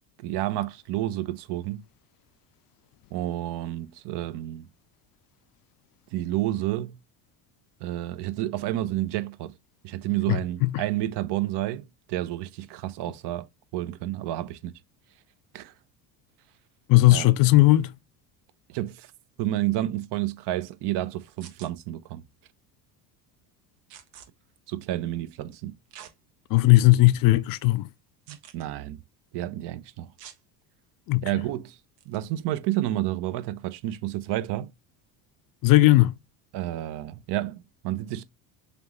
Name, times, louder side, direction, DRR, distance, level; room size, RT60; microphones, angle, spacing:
voice 1, 0.2-1.8 3.1-4.7 6.1-7.0 7.8-9.5 9.8-13.5 13.7-14.7 15.5-15.7 17.1-17.3 18.7-19.1 19.4-22.2 24.7-25.7 28.3-29.0 29.3-30.1 31.2-31.8 32.1-34.7 36.5-38.2, right 14 dB, 55° right, 0.7 m, -30 dB
voice 2, 10.3-10.8 16.9-17.9 26.5-27.9 31.1-31.2 35.6-36.1, left 18 dB, 45° left, 0.4 m, -18 dB
sound 1, 21.4-21.7 23.9-24.3 25.9-26.1 26.7-26.8 28.3-28.6 30.2-30.4 32.0-32.2, right 10 dB, 70° right, 1.2 m, -46 dB
3.9 x 3.4 x 3.0 m
hypercardioid pair, 80°, 48 cm